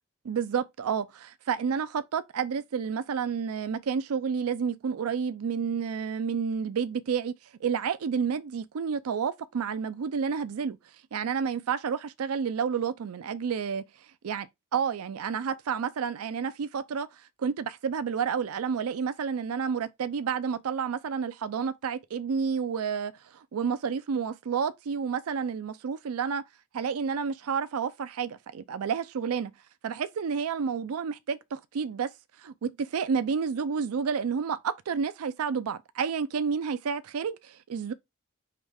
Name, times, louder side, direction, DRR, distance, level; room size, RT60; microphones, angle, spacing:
voice 1, 0.2-7.3 7.6-10.8 11.1-13.8 14.2-14.5 14.7-26.4 26.7-29.5 29.8-32.1 32.4-37.9, right 6 dB, 85° right, 0.4 m, -30 dB
5.0 x 3.1 x 3.4 m
head